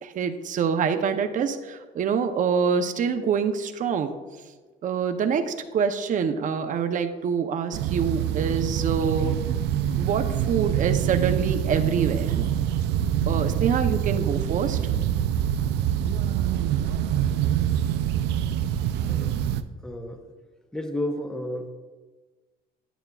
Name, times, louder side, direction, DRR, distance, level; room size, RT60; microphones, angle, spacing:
voice 1, 0.0-4.1 4.8-9.3 10.0-12.3 13.3-14.8, right 6 dB, 50° right, 6 dB, 0.7 m, -26 dB
sound 1, 7.7-19.6, right 10 dB, 85° right, 0.5 m, -25 dB
voice 2, 19.8-20.2 20.7-21.7, left 1 dB, 5° left, 5 dB, 0.8 m, -31 dB
10.0 x 9.1 x 2.4 m, 1.3 s
cardioid pair, 110°, 17 cm